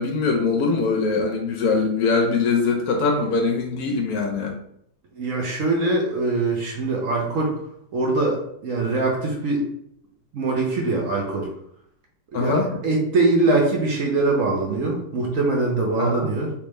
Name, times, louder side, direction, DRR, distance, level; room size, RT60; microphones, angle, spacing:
voice 1, 0.0-4.5 12.3-12.7 16.0-16.3, left 4 dB, 70° left, 3 dB, 0.9 m, -22 dB
voice 2, 5.1-7.6 7.9-9.6 10.3-11.5 12.3-16.5, right 2 dB, 60° right, -1 dB, 0.9 m, -23 dB
3.4 x 3.0 x 3.1 m, 0.71 s
omnidirectional pair, 2.0 m